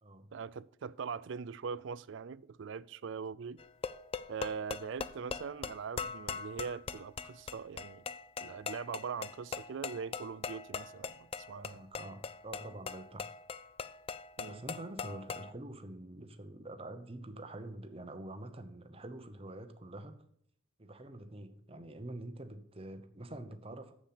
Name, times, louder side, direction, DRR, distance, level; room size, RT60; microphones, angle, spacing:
voice 1, 0.3-3.6 4.3-8.0 8.4-11.8 14.4-14.6, right 6 dB, 60° right, 0.4 m, -42 dB
sound 1, 3.6-15.5, left 5 dB, 25° left, 0.3 m, -41 dB
voice 2, 11.5-13.3 14.4-20.2 20.8-23.9, right 1 dB, 25° right, 0.9 m, -46 dB
7.3 x 7.2 x 7.6 m
head